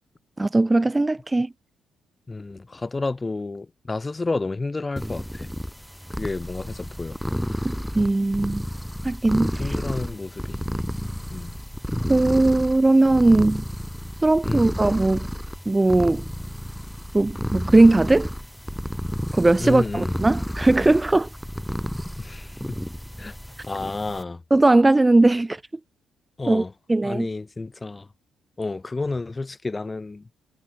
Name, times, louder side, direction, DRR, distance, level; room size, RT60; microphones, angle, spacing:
voice 1, 0.4-1.5 7.6-8.6 9.0-9.5 12.1-13.6 14.2-15.3 15.7-16.3 17.1-18.3 19.3-21.3 24.5-25.6 26.5-26.6 26.9-27.3, right 2 dB, 15° right, 0.7 m, -19 dB
voice 2, 2.3-5.5 6.2-7.2 9.6-10.6 11.3-11.5 14.5-14.7 19.6-20.2 22.2-22.6 23.2-23.4 23.6-24.4 26.4-26.7 27.0-28.1 28.6-30.3, left 3 dB, 20° left, 1.9 m, -30 dB
sound 1, 5.0-24.2, equal, ahead, 2.0 m, -31 dB
cardioid pair, 90°, 0 cm